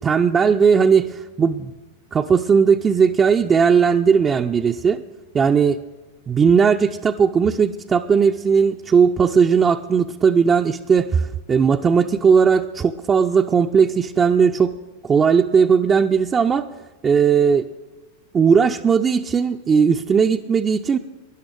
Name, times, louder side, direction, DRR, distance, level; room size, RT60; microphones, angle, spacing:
voice 1, 0.0-1.7 2.1-5.0 5.3-5.8 6.3-14.7 15.0-16.7 17.0-17.7 18.3-21.0, right 6 dB, 20° right, 5 dB, 0.4 m, -17 dB
12.0 x 11.0 x 6.5 m, 1.2 s
figure-of-eight pair, 90°, 0 cm